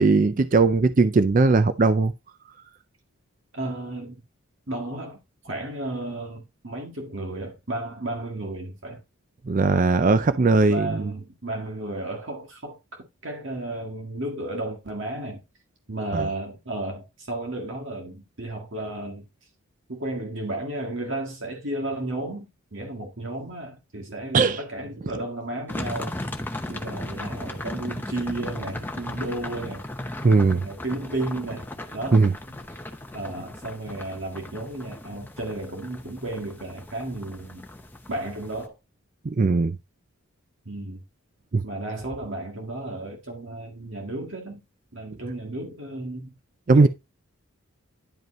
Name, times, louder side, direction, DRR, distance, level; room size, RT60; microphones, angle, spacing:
voice 1, 0.0-2.1 9.5-11.1 16.1-16.3 24.3-24.6 30.2-30.6 32.1-32.3 39.2-39.8 41.5-41.6 46.7-46.9, right 3 dB, 35° right, 0.4 m, -19 dB
voice 2, 3.5-4.2 4.7-5.2 5.4-9.0 10.7-15.4 15.9-19.2 19.9-26.1 26.7-29.9 30.6-32.2 32.5-32.6 33.1-37.6 38.1-38.7 40.7-41.0 41.6-44.6 44.9-46.4 46.7-46.9, right 2 dB, 60° right, 1.9 m, -33 dB
sound 1, 25.7-38.7, left 1 dB, 10° left, 0.8 m, -37 dB
11.0 x 5.2 x 3.1 m
head